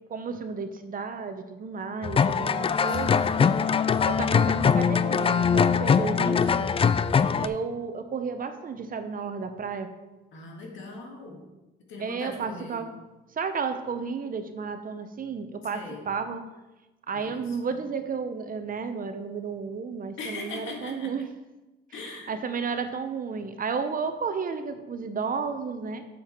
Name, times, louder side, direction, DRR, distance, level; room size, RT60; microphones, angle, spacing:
voice 1, 0.1-3.5 4.0-6.7 7.4-9.9 12.0-13.0 13.3-16.4 17.1-21.3 22.3-26.0, right 5 dB, 45° right, 9 dB, 0.9 m, -32 dB
sound 1, 2.0-7.5, left 6 dB, 30° left, 0.4 m, -22 dB
voice 2, 2.7-3.8 7.1-7.4 10.3-11.4 11.9-12.8 15.7-16.0 17.1-17.9 20.2-21.1 21.9-22.4, left 2 dB, 80° left, 1 dB, 2.0 m, -41 dB
7.4 x 7.1 x 4.5 m, 1.1 s
cardioid pair, 90°, 20 cm